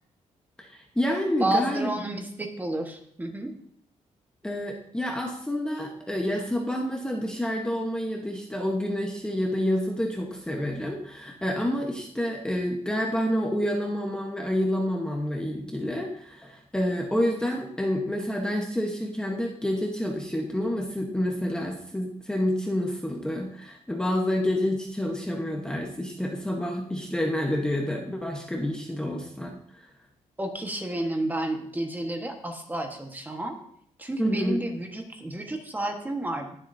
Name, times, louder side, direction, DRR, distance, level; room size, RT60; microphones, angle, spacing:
voice 1, 0.6-1.9 4.4-29.9 34.2-34.6, left 1 dB, 5° left, 1 dB, 1.1 m, -28 dB
voice 2, 1.4-3.5 30.4-33.6 34.0-36.5, right 1 dB, 15° right, 4 dB, 1.3 m, -31 dB
20.0 x 7.4 x 2.7 m, 0.68 s
cardioid pair, 135°, 12 cm